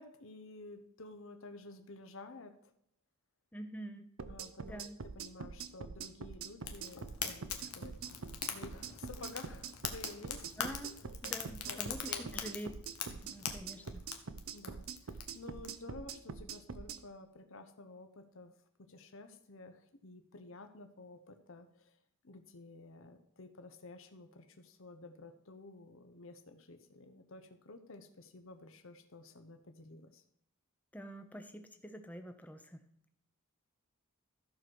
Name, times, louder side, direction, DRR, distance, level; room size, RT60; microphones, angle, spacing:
voice 1, 0.0-2.7 4.3-4.8 5.1-8.1 8.5-10.4 11.7-12.4 14.5-22.0 22.2-30.2, left 2 dB, 60° left, 7 dB, 1.0 m, -52 dB
voice 2, 3.5-4.1 4.6-5.0 10.6-10.9 11.2-12.7 13.1-14.0 30.9-32.8, equal, 5° left, 7 dB, 0.8 m, -46 dB
sound 1, 4.2-17.0, right 5 dB, 65° right, 0.6 m, -44 dB
Fire, 6.6-15.7, left 8 dB, 90° left, 1.2 m, -43 dB
14.0 x 4.8 x 6.2 m, 0.74 s
head